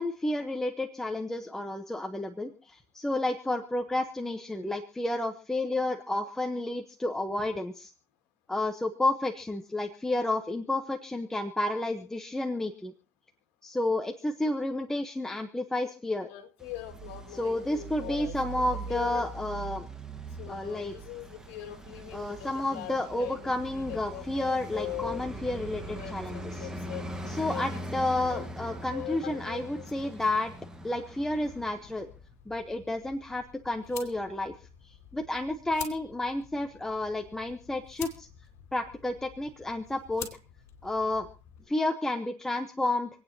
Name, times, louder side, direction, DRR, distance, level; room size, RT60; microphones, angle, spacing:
voice 1, 0.0-7.9 8.5-12.9 13.6-16.3 17.3-19.9 20.5-20.9 22.1-26.7 27.3-30.5 30.8-32.1 32.5-34.5 34.9-38.3 38.7-40.3 40.8-41.3 41.7-43.1, left 2 dB, 5° left, 5 dB, 0.9 m, -31 dB
voice 2, 16.3-19.3 20.4-25.3 25.8-27.8 28.1-30.1, left 14 dB, 75° left, 5 dB, 1.9 m, -41 dB
Traffic noise roadway noise, 16.6-32.1, right 2 dB, 10° right, 1.4 m, -41 dB
sound 1, 31.3-41.7, left 9 dB, 45° left, 3.2 m, -48 dB
27.5 x 9.3 x 2.7 m, 0.40 s
supercardioid pair, 130°, 7 cm